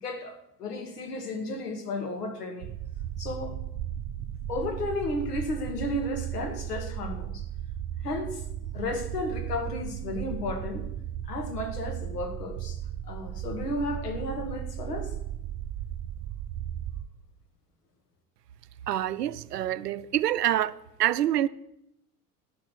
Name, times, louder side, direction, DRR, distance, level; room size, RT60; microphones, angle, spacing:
voice 1, 0.0-2.7 3.2-3.6 4.5-7.5 8.0-8.4 8.7-10.9 11.2-15.1, left 1 dB, 85° left, 1.9 m, -33 dB
sound 1, 2.6-17.1, right 11 dB, 45° right, 0.6 m, -36 dB
voice 2, 18.9-21.5, right 12 dB, 90° right, 0.6 m, -26 dB
11.5 x 6.5 x 6.3 m
hypercardioid pair, 80°, 46 cm